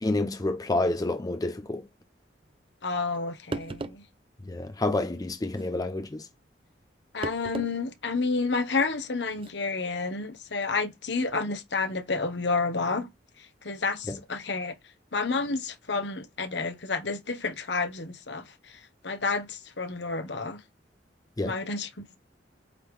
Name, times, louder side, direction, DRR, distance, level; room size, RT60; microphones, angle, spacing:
voice 1, 0.0-1.9 4.4-6.3 14.1-14.2 21.4-21.6, left 2 dB, 20° left, 0.5 m, -29 dB
voice 2, 2.8-4.0 7.1-13.1 13.4-14.7 15.1-20.6 21.4-22.2, left 4 dB, 65° left, 1.1 m, -30 dB
sound 1, 3.1-3.2 3.5-4.1 5.5-5.7 7.2-7.7 8.1-8.2 9.4-9.5, right 3 dB, 30° right, 0.5 m, -36 dB
8.2 x 3.7 x 3.2 m
head